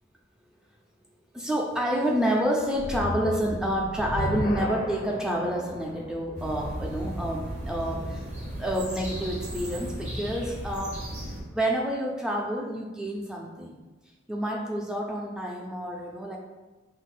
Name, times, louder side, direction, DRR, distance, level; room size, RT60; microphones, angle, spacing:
voice 1, 1.3-8.2 8.6-11.0 11.5-13.7 14.3-16.4, equal, 5° right, -1 dB, 0.3 m, -28 dB
sound 1, 2.7-8.0, left 1 dB, 65° left, 0.5 m, -35 dB
sound 2, 6.4-11.4, right 1 dB, 40° right, 0.8 m, -35 dB
5.7 x 2.0 x 2.4 m, 1.2 s
head